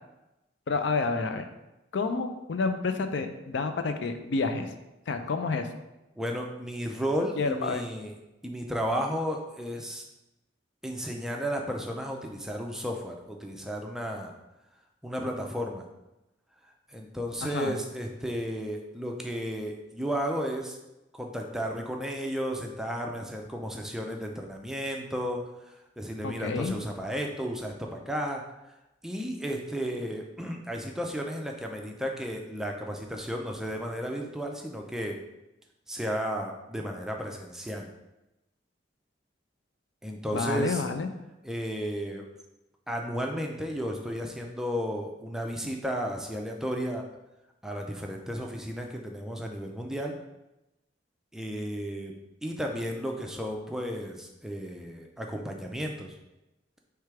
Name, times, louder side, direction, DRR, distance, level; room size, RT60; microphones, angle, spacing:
voice 1, 0.7-1.5 1.9-4.7 5.1-5.7 7.4-7.8 17.5-17.7 26.2-26.7 40.3-41.1, left 4 dB, 70° left, 7 dB, 0.4 m, -29 dB
voice 2, 6.1-8.2 8.4-10.1 10.8-14.3 14.7-15.9 16.6-20.8 21.1-35.2 35.9-37.9 40.0-40.8 41.4-42.3 42.9-47.1 47.6-50.2 51.3-52.1 52.4-56.2, equal, 5° right, 1 dB, 0.4 m, -33 dB
3.3 x 3.3 x 4.7 m, 0.96 s
head